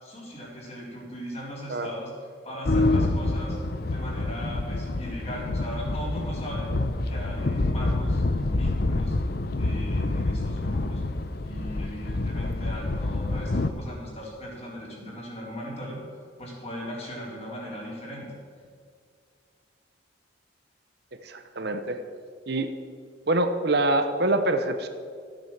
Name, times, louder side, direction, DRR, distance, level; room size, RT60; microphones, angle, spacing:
voice 1, 0.0-2.1 2.4-3.6 3.9-6.7 7.1-9.2 9.6-11.0 11.4-18.3, equal, 30° left, -4 dB, 3.8 m, -38 dB
sound 1, 2.7-13.7, left 2 dB, 50° left, 0.7 m, -27 dB
voice 2, 21.2-22.0 22.5-22.7 23.3-24.9, right 2 dB, 55° right, 8 dB, 0.8 m, -25 dB
14.0 x 9.1 x 7.3 m, 2.2 s
head